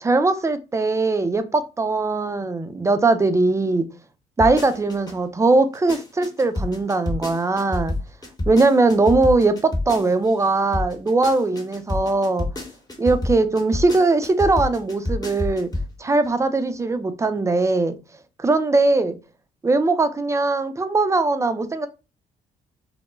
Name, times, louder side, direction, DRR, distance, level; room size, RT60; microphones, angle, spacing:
voice 1, 0.0-3.9 4.4-7.9 8.5-12.5 13.0-15.7 16.0-18.0 18.4-19.2 19.6-21.9, right 3 dB, 15° right, 0.4 m, -20 dB
sound 1, 4.4-5.1 5.6-10.5 10.7-15.9 16.2-16.3, left 2 dB, 20° left, 1.0 m, -28 dB
2.1 x 2.1 x 3.0 m
supercardioid pair, 60°, 17 cm